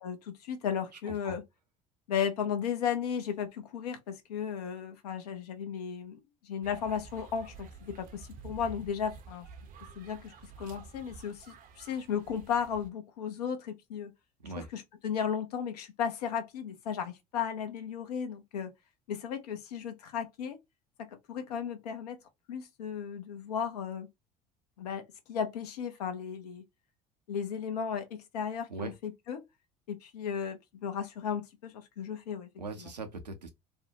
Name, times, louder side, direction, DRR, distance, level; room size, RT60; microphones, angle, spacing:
voice 1, 0.0-1.4 2.1-9.5 10.0-14.1 14.5-18.7 19.1-20.6 21.0-22.2 22.5-24.1 24.8-25.0 25.3-26.6 27.3-29.4 29.9-32.5 32.8-32.9, left 7 dB, 75° left, 0.7 m, -35 dB
sound 1, 6.6-12.9, right 5 dB, 45° right, 0.6 m, -50 dB
voice 2, 32.6-33.5, right 3 dB, 90° right, 0.6 m, -40 dB
2.6 x 2.1 x 2.7 m
figure-of-eight pair, 65°, 21 cm